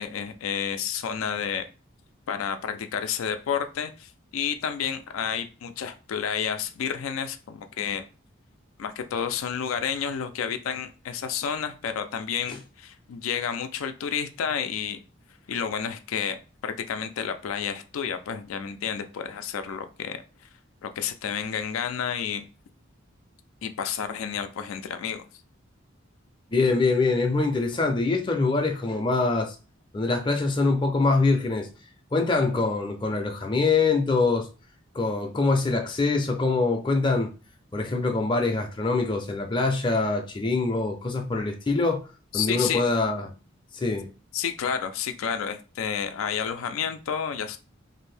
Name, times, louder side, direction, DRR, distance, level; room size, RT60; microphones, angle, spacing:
voice 1, 0.0-1.7 2.3-8.0 8.8-15.0 15.5-20.2 20.8-22.4 23.6-25.2 42.3-42.8 44.3-47.6, left 7 dB, 80° left, 0.4 m, -30 dB
voice 2, 26.5-29.6 29.9-31.7 32.1-34.5 34.9-37.3 37.7-42.0 42.3-43.3 43.7-44.1, left 3 dB, 25° left, 0.5 m, -24 dB
2.6 x 2.5 x 3.3 m
head